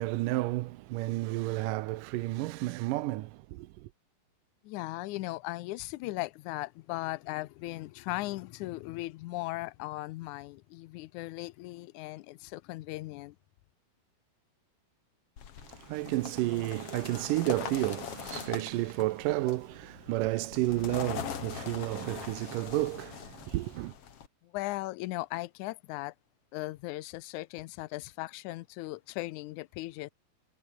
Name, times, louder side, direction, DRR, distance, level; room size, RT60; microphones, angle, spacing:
voice 1, 0.0-3.9 15.6-23.9, right 18 dB, 75° right, 2.1 m, -31 dB
voice 2, 4.6-13.3 24.4-26.1 26.5-30.1, left 19 dB, 90° left, 1.7 m, -38 dB
sound 1, 15.4-24.3, left 8 dB, 45° left, 2.4 m, -42 dB
omnidirectional pair, 4.3 m